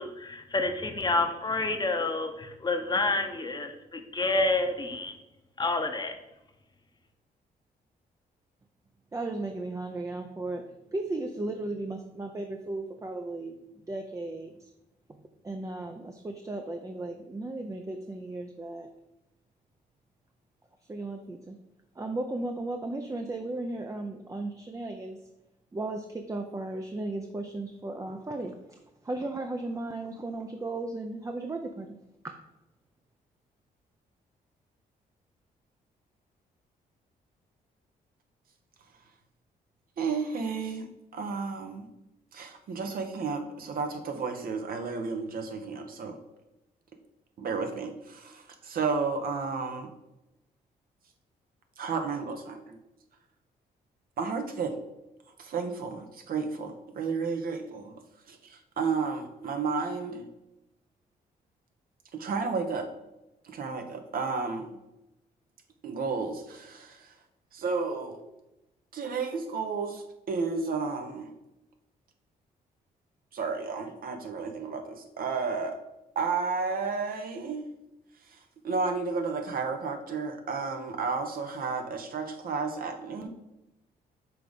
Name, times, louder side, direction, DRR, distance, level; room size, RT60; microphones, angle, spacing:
voice 1, 0.0-5.1 5.6-6.1, left 2 dB, 25° left, 5 dB, 0.9 m, -28 dB
voice 2, 9.1-13.5 13.9-14.5 15.1-18.9 20.9-21.6 22.0-25.2 25.7-28.8 29.0-32.0 32.2-32.3, right 2 dB, 20° right, 4 dB, 0.6 m, -35 dB
voice 3, 40.0-40.9 41.1-41.9 42.3-46.2 47.4-49.9 51.8-52.8 54.2-54.8 55.4-57.9 58.3-60.2 62.1-62.9 63.4-64.7 65.8-67.0 67.5-68.2 68.9-71.3 73.3-75.8 76.1-77.6 78.6-83.3, right 4 dB, 65° right, 6 dB, 1.0 m, -32 dB
5.9 x 3.6 x 5.1 m, 0.94 s
cardioid pair, 85°, 16 cm